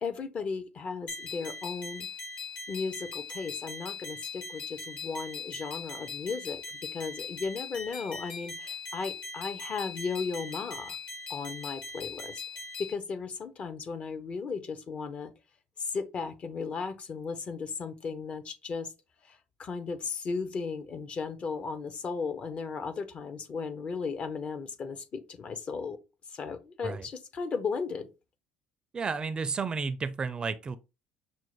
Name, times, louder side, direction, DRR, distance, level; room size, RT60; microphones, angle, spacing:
voice 1, 0.0-2.1 2.7-6.6 6.9-11.0 11.3-12.4 12.8-15.3 15.8-18.9 19.2-26.0 26.3-28.1, left 5 dB, 40° left, 0.6 m, -35 dB
sound 1, 1.1-12.9, left 4 dB, 65° left, 1.9 m, -40 dB
voice 2, 28.9-30.8, right 5 dB, 30° right, 0.4 m, -32 dB
6.0 x 2.1 x 3.0 m
supercardioid pair, 95°, 3 cm